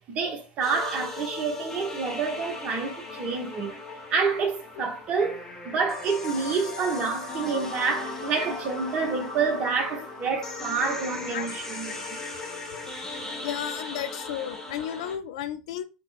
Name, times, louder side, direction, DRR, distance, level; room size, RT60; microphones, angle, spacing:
voice 1, 0.0-3.8 4.1-12.2, right 5 dB, 40° right, 0.9 m, -28 dB
sound 1, 0.6-15.2, left 3 dB, 15° left, 1.0 m, -37 dB
voice 2, 13.4-15.8, left 10 dB, 65° left, 0.4 m, -33 dB
3.5 x 2.1 x 2.4 m
hypercardioid pair, 80°, 4 cm